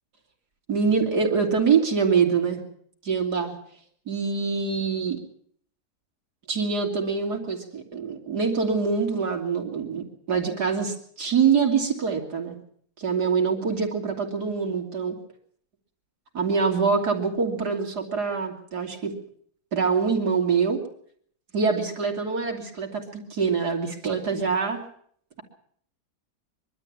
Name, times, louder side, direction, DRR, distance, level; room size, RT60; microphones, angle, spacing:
voice 1, 0.7-2.6 3.0-3.5 4.1-5.2 6.5-12.6 13.0-15.2 16.3-19.1 19.7-20.8 21.5-24.8, right 5 dB, 85° right, 2 dB, 3.6 m, -24 dB
23.5 x 12.5 x 8.8 m, 0.63 s
omnidirectional pair, 1.7 m